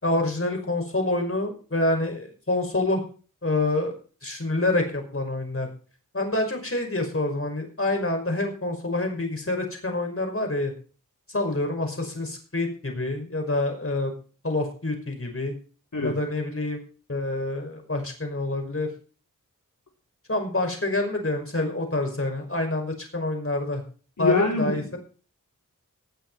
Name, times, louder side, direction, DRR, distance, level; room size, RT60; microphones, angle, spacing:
voice 1, 0.0-3.0 3.4-3.9 4.2-5.7 6.1-10.7 11.3-14.1 14.4-15.5 16.0-16.8 17.1-18.9 20.3-23.8 24.2-25.0, left 2 dB, 45° left, 4 dB, 5.5 m, -27 dB
voice 2, 24.2-24.8, left 3 dB, 65° left, -1 dB, 4.5 m, -24 dB
19.0 x 8.1 x 4.7 m, 0.38 s
wide cardioid pair, 50°, 33 cm